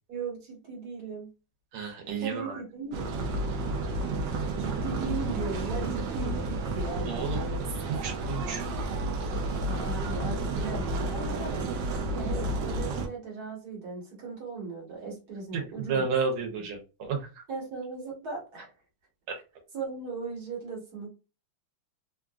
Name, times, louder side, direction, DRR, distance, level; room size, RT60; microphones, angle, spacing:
voice 1, 0.1-1.3 2.2-3.1 4.6-7.6 9.7-11.7 12.1-16.1 17.5-18.7 19.7-21.1, right 4 dB, 50° right, -2 dB, 1.7 m, -37 dB
voice 2, 1.7-2.6 7.1-8.7 15.5-17.2 19.3-19.4, right 5 dB, 90° right, 3 dB, 1.7 m, -32 dB
sound 1, 2.9-13.1, right 2 dB, 70° right, 1.1 m, -31 dB
3.7 x 2.4 x 2.3 m, 0.30 s
omnidirectional pair, 2.3 m